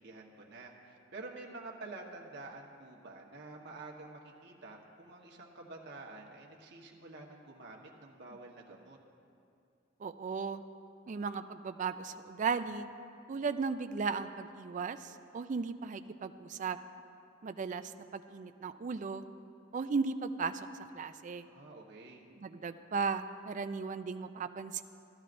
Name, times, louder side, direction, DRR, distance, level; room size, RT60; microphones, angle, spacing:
voice 1, 0.0-9.0 21.4-22.2, right 2 dB, 60° right, -1 dB, 1.2 m, -49 dB
voice 2, 10.0-10.6 11.1-12.9 13.3-16.8 17.4-19.2 19.7-20.5 20.9-21.5 22.4-24.8, right 5 dB, 40° right, 10 dB, 0.4 m, -36 dB
16.0 x 12.0 x 2.6 m, 2.5 s
head